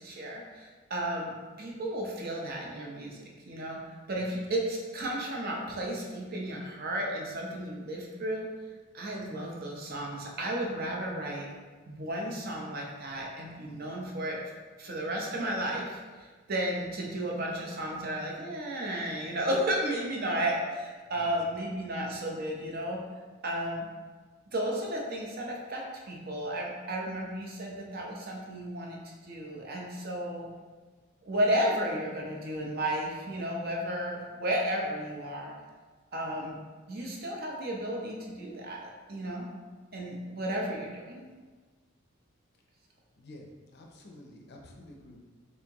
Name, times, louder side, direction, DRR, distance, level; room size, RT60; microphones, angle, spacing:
voice 1, 0.0-1.3 1.6-3.8 4.1-8.5 8.9-11.5 11.9-14.4 14.8-23.0 23.4-23.9 24.5-29.0 29.2-30.5 31.2-35.5 36.1-36.6 36.9-39.5 39.9-41.2, right 1 dB, 45° right, -1 dB, 0.7 m, -33 dB
voice 2, 43.2-45.2, left 1 dB, 50° left, 0 dB, 0.6 m, -50 dB
4.2 x 3.5 x 2.9 m, 1.4 s
head